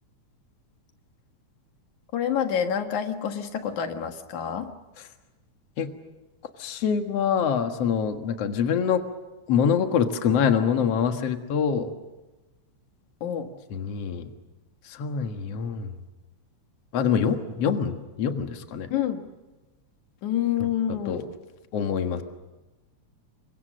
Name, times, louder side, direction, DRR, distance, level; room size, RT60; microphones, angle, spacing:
voice 1, 2.1-4.8 13.2-13.5 18.9-19.3 20.2-21.3, left 9 dB, 80° left, 6 dB, 3.0 m, -28 dB
voice 2, 6.6-9.0 9.5-11.9 13.7-14.3 14.8-15.9 16.9-18.9 21.1-21.2 21.7-22.2, left 7 dB, 60° left, 6 dB, 2.6 m, -25 dB
29.0 x 24.5 x 6.3 m, 1.1 s
omnidirectional pair, 3.3 m